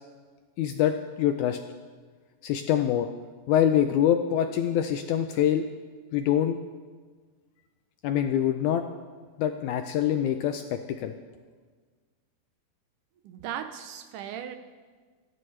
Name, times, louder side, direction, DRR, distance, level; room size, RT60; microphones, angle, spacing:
voice 1, 0.6-1.6 2.4-3.1 3.5-5.7 6.1-6.6 8.0-8.9 9.4-11.1, left 10 dB, 80° left, 6 dB, 1.8 m, -25 dB
voice 2, 13.2-14.6, right 9 dB, 75° right, 9 dB, 2.1 m, -37 dB
29.5 x 11.0 x 3.3 m, 1.5 s
omnidirectional pair, 4.0 m